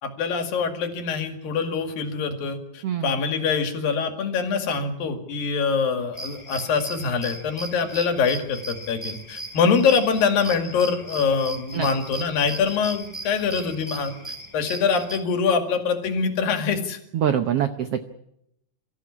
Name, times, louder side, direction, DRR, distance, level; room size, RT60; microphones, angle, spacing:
voice 1, 0.0-17.0, left 5 dB, 75° left, 6 dB, 3.8 m, -24 dB
sound 1, 6.1-15.2, right 1 dB, 5° right, 3.7 m, -38 dB
voice 2, 17.1-18.0, right 9 dB, 85° right, 9 dB, 1.3 m, -24 dB
24.0 x 14.5 x 9.8 m, 0.79 s
omnidirectional pair, 4.1 m